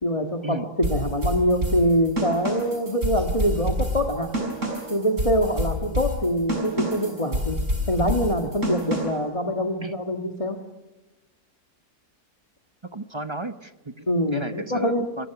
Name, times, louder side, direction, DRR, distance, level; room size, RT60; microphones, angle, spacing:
voice 1, 0.0-4.3 4.9-7.6 7.9-10.6 14.1-15.1, equal, 20° left, 3 dB, 1.7 m, -24 dB
sound 1, 0.8-9.3, equal, 50° right, 5.9 m, -28 dB
voice 2, 12.9-15.3, right 2 dB, 20° right, 10 dB, 0.9 m, -33 dB
28.0 x 22.0 x 6.0 m, 1.1 s
omnidirectional pair, 1.7 m